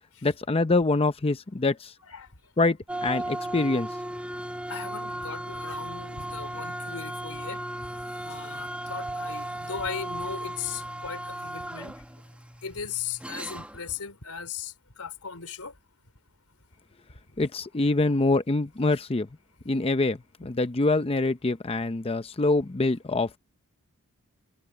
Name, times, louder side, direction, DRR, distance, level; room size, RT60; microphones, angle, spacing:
voice 1, 0.2-1.9 2.6-3.9 17.4-19.3 19.7-23.3, left 2 dB, 25° left, 0.6 m, -25 dB
voice 2, 2.0-2.3 4.7-7.6 7.9-12.0 12.6-15.7 17.4-17.5, left 6 dB, 90° left, 3.5 m, -37 dB
sound 1, 2.9-13.9, right 1 dB, 5° right, 1.2 m, -36 dB
head